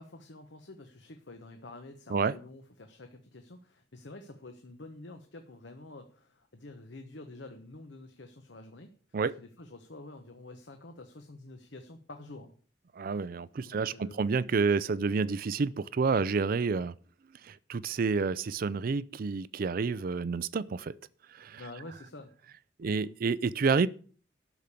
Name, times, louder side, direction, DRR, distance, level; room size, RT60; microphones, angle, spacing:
voice 1, 0.0-8.9 9.3-12.5 13.6-14.2 21.6-22.3 22.8-23.1, left 2 dB, 70° left, 1.1 m, -48 dB
voice 2, 13.0-16.9 17.4-20.9 21.3-21.6 22.8-23.9, right 4 dB, 50° right, 0.4 m, -29 dB
12.5 x 5.1 x 8.3 m
head